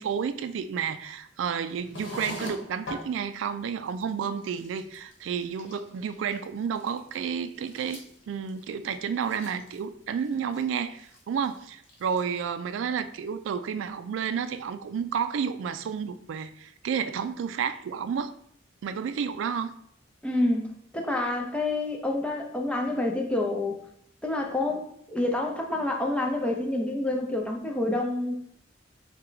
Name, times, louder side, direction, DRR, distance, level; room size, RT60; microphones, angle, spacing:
voice 1, 0.0-8.0 8.3-18.3 18.8-19.7, right 7 dB, 75° right, 11 dB, 0.3 m, -31 dB
sound 1, 1.7-3.1 3.6-3.7 3.9-4.1 4.4-5.1 5.4-6.5 6.8-9.9 10.2-10.6 11.0-11.6 11.8-12.3, left 1 dB, 75° left, 1.0 m, -41 dB
voice 2, 20.2-23.8 24.2-28.6, left 2 dB, 5° left, 1 dB, 0.5 m, -28 dB
4.2 x 2.2 x 3.8 m, 0.69 s
head